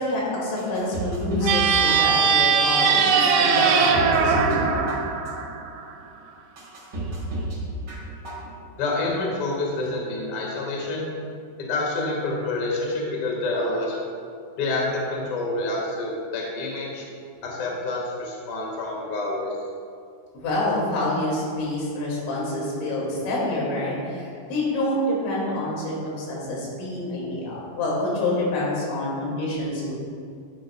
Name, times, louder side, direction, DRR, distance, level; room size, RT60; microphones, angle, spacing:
voice 1, 0.0-4.7 20.3-29.9, left 1 dB, 90° left, -4 dB, 4.9 m, -27 dB
sound 1, 0.6-1.6 1.9-2.5 3.0-3.1 3.6-4.6 4.9-5.5 6.0-6.1 6.6-7.6 7.9-8.5 8.8-8.9, right 2 dB, 50° right, 1.2 m, -32 dB
sound 2, 1.4-5.9, right 6 dB, 80° right, 3.2 m, -20 dB
voice 2, 8.8-11.0 11.7-14.0 14.6-17.0 17.4-19.5, left 2 dB, 70° left, -2 dB, 1.3 m, -27 dB
14.0 x 9.1 x 2.3 m, 2.3 s
omnidirectional pair, 5.5 m